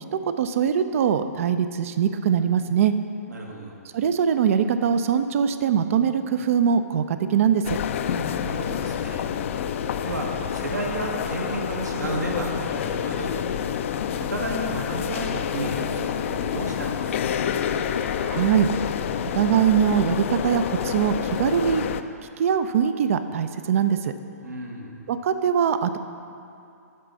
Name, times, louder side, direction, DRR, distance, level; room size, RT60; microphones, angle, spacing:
voice 1, 0.1-2.9 3.9-7.8 18.2-18.7 19.3-21.8 22.4-24.1 25.1-26.0, right 8 dB, 55° right, 10 dB, 0.4 m, -22 dB
voice 2, 3.3-3.7 8.3-9.4 10.0-13.3 14.3-17.4 24.4-24.9, right 2 dB, 80° right, -1 dB, 1.5 m, -32 dB
sound 1, 7.6-22.0, left 8 dB, 50° left, 0.4 m, -28 dB
12.0 x 4.1 x 6.0 m, 2.6 s
hypercardioid pair, 130°, 9 cm